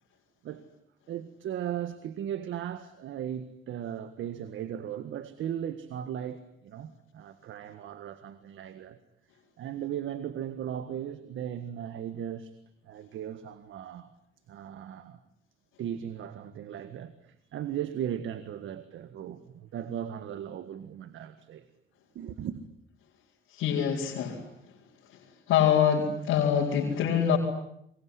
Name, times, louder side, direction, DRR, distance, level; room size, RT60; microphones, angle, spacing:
voice 1, 1.1-9.0 9.6-12.5 12.8-14.1 14.5-15.2 15.8-21.7 22.1-22.6, right 10 dB, 75° right, 1.7 m, -37 dB
voice 2, 23.5-24.5 25.1-25.2 25.5-27.4, left 8 dB, 85° left, 4.6 m, -25 dB
27.0 x 22.5 x 9.7 m
cardioid pair, 90°, 20 cm